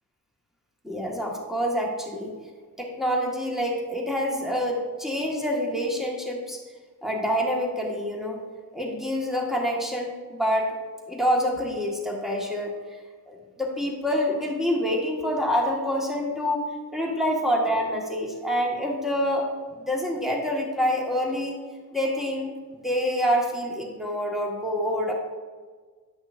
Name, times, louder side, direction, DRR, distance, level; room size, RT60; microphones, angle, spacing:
voice 1, 0.8-2.3 2.8-6.6 7.0-8.4 8.7-10.7 11.1-13.0 13.3-19.5 19.9-21.6 21.9-22.5 22.8-25.1, equal, ahead, -2 dB, 1.7 m, -27 dB
10.0 x 6.0 x 2.6 m, 1.5 s
cardioid pair, 80°, 37 cm